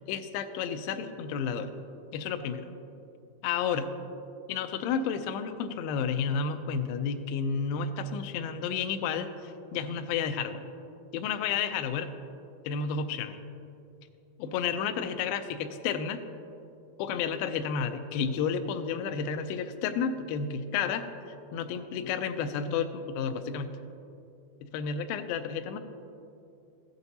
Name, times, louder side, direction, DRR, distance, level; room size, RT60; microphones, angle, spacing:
voice 1, 0.1-1.7 2.1-2.7 3.4-3.9 4.5-9.3 9.7-10.6 11.1-12.1 12.7-13.4 14.4-16.2 17.0-21.0 21.5-23.8 24.6-25.8, left 6 dB, 85° left, 8 dB, 2.2 m, -31 dB
15.5 x 8.1 x 2.7 m, 2.6 s
omnidirectional pair, 4.6 m